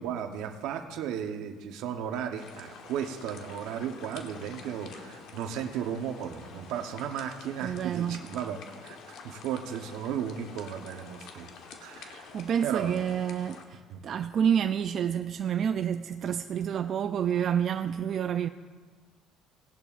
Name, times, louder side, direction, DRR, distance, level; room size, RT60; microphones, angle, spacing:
voice 1, 0.0-11.5 11.8-12.3 12.6-13.0 13.9-14.0, right 8 dB, 75° right, 0.9 m, -35 dB
sound 1, 2.3-13.6, left 5 dB, 70° left, 1.2 m, -48 dB
voice 2, 7.6-8.2 12.1-18.5, right 8 dB, 50° right, 0.3 m, -29 dB
18.0 x 11.0 x 2.5 m
cardioid pair, 100°, 0 cm